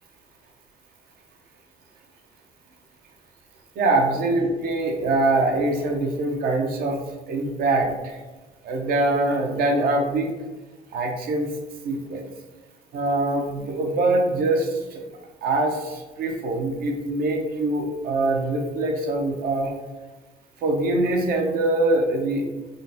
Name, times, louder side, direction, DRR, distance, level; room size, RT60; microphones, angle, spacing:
voice 1, 3.8-7.0 7.3-8.2 8.6-10.3 10.9-11.5 11.8-12.2 12.9-15.0 15.4-19.7 20.6-22.5, right 2 dB, 65° right, 2 dB, 0.6 m, -23 dB
3.7 x 2.1 x 2.6 m, 1.2 s
cardioid pair, 110°, 17 cm